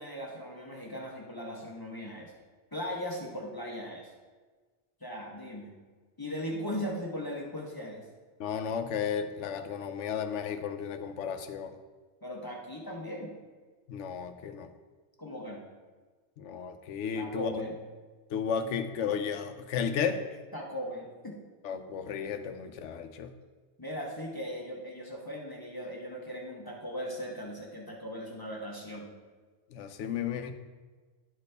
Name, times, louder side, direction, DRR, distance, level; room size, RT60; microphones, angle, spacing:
voice 1, 0.0-2.3 2.7-4.1 5.0-5.7 6.2-8.1 12.2-13.3 15.2-15.7 17.1-17.8 20.5-21.4 23.8-29.1, equal, 20° left, -3 dB, 0.9 m, -38 dB
voice 2, 8.4-11.7 13.9-14.7 16.4-17.7 18.3-20.2 21.6-23.3 29.7-30.5, left 7 dB, 85° left, 8 dB, 0.9 m, -33 dB
11.5 x 4.1 x 3.3 m, 1.4 s
omnidirectional pair, 1.2 m